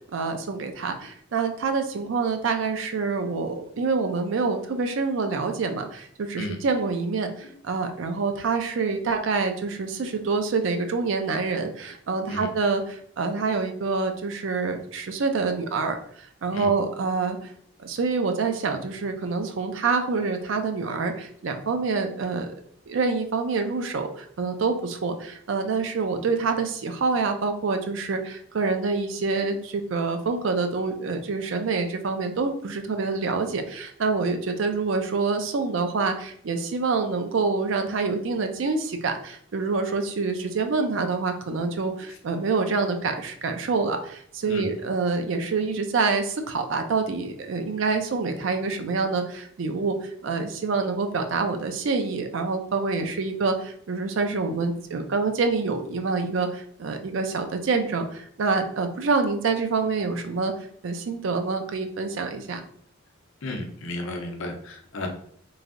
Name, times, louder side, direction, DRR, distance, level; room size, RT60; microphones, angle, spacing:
voice 1, 0.1-12.8 13.2-16.0 16.4-17.4 17.8-22.5 22.9-60.5 60.8-62.6, right 4 dB, 70° right, 6 dB, 0.4 m, -26 dB
voice 2, 63.4-65.1, left 1 dB, 75° left, 3 dB, 0.6 m, -33 dB
3.1 x 2.6 x 2.5 m, 0.63 s
head